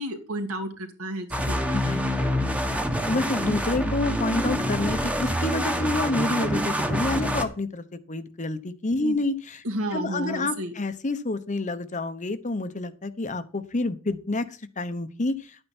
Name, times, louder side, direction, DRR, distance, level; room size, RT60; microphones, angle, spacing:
voice 1, 0.0-1.8 9.0-9.2 9.6-10.7, right 1 dB, 70° right, 4 dB, 2.5 m, -32 dB
sound 1, 1.3-7.4, equal, 5° right, 1.2 m, -26 dB
voice 2, 1.7-2.6 3.1-9.6 9.9-15.6, left 2 dB, 35° left, 11 dB, 0.9 m, -29 dB
11.5 x 8.9 x 4.4 m, 0.36 s
head